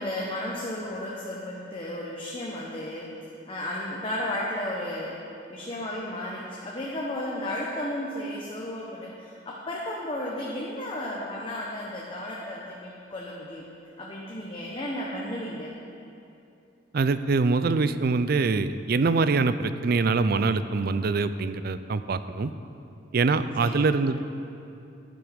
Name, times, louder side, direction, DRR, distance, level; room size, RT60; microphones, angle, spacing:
voice 1, 0.0-3.1 3.5-5.2 5.5-13.7 14.0-15.8 23.6-23.9, left 1 dB, 25° left, -4 dB, 1.0 m, -33 dB
voice 2, 16.9-22.5 23.1-24.2, right 4 dB, 50° right, 13 dB, 0.4 m, -24 dB
11.0 x 10.5 x 5.1 m, 2.7 s
head